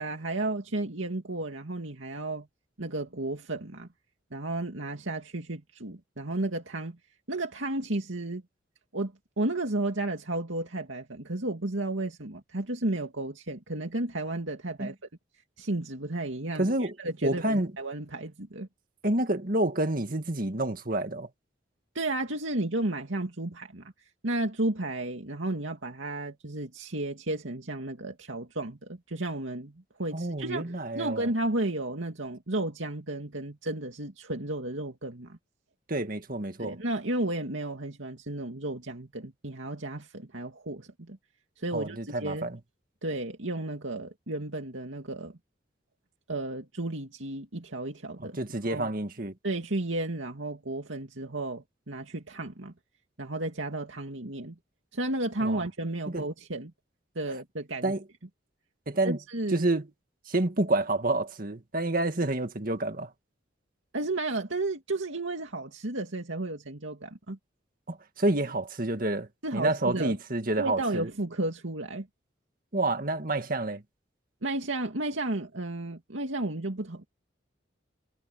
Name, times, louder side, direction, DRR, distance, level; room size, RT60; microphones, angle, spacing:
voice 1, 0.0-2.5 2.8-3.9 4.3-7.0 7.3-8.4 8.9-14.9 15.6-18.7 21.9-23.9 24.2-35.4 36.6-41.2 41.6-42.5 43.0-45.4 46.3-48.4 48.6-48.9 49.4-52.7 53.2-54.6 54.9-56.7 57.2-57.9 59.0-59.7 63.9-67.4 69.4-70.2 70.6-72.1 74.4-77.1, right 2 dB, 85° right, 2.4 m, -33 dB
voice 2, 16.6-16.9 17.2-17.7 19.0-21.3 30.1-31.3 35.9-36.8 41.7-42.6 48.2-49.3 55.4-55.6 56.1-56.2 57.8-58.0 58.9-59.2 59.5-59.9 60.3-63.1 67.9-71.1 72.7-73.8, right 2 dB, 45° right, 2.0 m, -28 dB
head